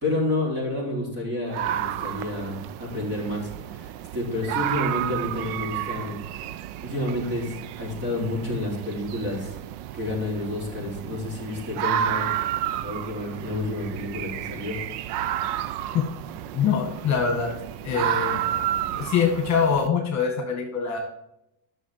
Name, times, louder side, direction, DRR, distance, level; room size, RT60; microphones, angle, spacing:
voice 1, 0.0-3.4 4.1-6.2 6.8-7.4 7.8-9.5 9.9-12.3 12.8-14.8, left 2 dB, 25° right, -2 dB, 4.4 m, -29 dB
sound 1, 1.5-19.9, right 11 dB, 65° right, 0.7 m, -31 dB
voice 2, 16.5-17.5 17.8-18.4 18.9-21.0, left 6 dB, 35° left, 2 dB, 2.2 m, -24 dB
10.5 x 6.6 x 5.0 m, 0.84 s
cardioid pair, 140°, 46 cm